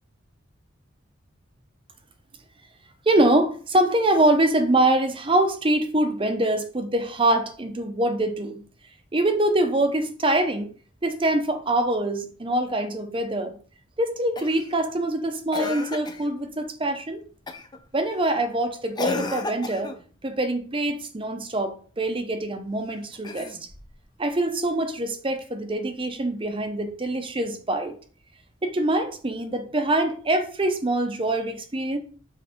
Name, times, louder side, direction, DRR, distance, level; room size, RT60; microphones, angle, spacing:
voice 1, 3.1-8.6 9.1-10.7 11.0-13.6 14.0-17.2 17.9-19.9 20.2-23.6 24.2-27.9 28.6-32.0, right 1 dB, 25° right, 7 dB, 0.7 m, -24 dB
Cough, 14.4-14.7 15.5-16.3 17.5-17.8 19.0-20.0 23.1-23.9 25.4-25.5, left 3 dB, 20° left, 0.6 m, -32 dB
6.8 x 3.3 x 5.1 m, 0.42 s
head